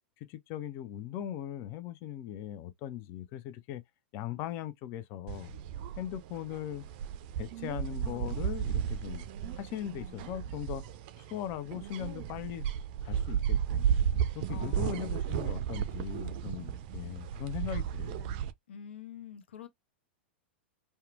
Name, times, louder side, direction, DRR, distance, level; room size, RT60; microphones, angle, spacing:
voice 1, 0.3-3.8 4.1-5.6 6.0-6.8 7.4-10.9 11.2-12.7 13.0-13.9 14.3-18.3, left 11 dB, 45° left, 0.5 m, -39 dB
sound 1, 5.3-18.5, right 9 dB, 50° right, 0.4 m, -34 dB
voice 2, 14.5-15.2 18.7-19.7, left 8 dB, 75° left, 0.8 m, -46 dB
2.8 x 2.2 x 2.4 m
hypercardioid pair, 105°, 6 cm